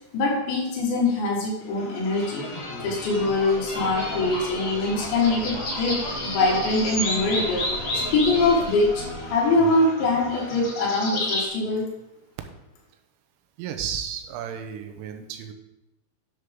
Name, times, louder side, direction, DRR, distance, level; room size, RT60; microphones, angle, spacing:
voice 1, 0.1-2.4 2.8-7.7 7.9-11.9, left 2 dB, 65° left, -2 dB, 3.8 m, -23 dB
sound 1, 1.8-11.5, left 1 dB, 45° left, 4.9 m, -31 dB
voice 2, 13.6-15.5, right 8 dB, 80° right, 5 dB, 3.2 m, -33 dB
11.0 x 7.3 x 3.7 m, 0.91 s
omnidirectional pair, 5.8 m